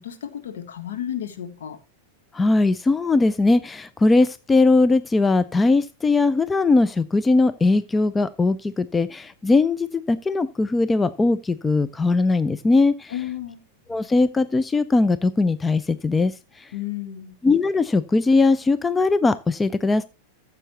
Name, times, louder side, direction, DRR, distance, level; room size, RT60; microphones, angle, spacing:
voice 1, 0.0-1.8 13.1-13.6 16.7-17.3, left 11 dB, 60° left, 1.4 m, -32 dB
voice 2, 2.3-13.1 13.9-16.7 17.4-20.0, left 3 dB, 15° left, 0.4 m, -20 dB
14.5 x 7.1 x 3.0 m
figure-of-eight pair, 90°, 0 cm